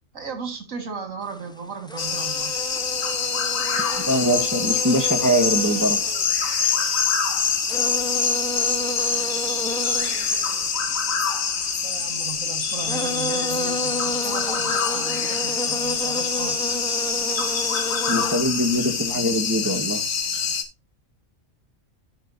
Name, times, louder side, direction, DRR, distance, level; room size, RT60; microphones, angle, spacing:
voice 1, 0.1-2.5 11.8-16.8, right 5 dB, 90° right, 2.4 m, -36 dB
sound 1, 1.3-1.5 1.9-6.9 7.3-11.7 12.5-12.6 12.8-18.4, left 1 dB, 5° left, 0.4 m, -32 dB
sound 2, 2.0-20.6, left 6 dB, 85° left, 1.7 m, -25 dB
voice 2, 4.0-6.0 6.5-6.6 18.1-20.4, equal, 15° right, 1.3 m, -23 dB
13.5 x 5.8 x 2.7 m
omnidirectional pair, 1.3 m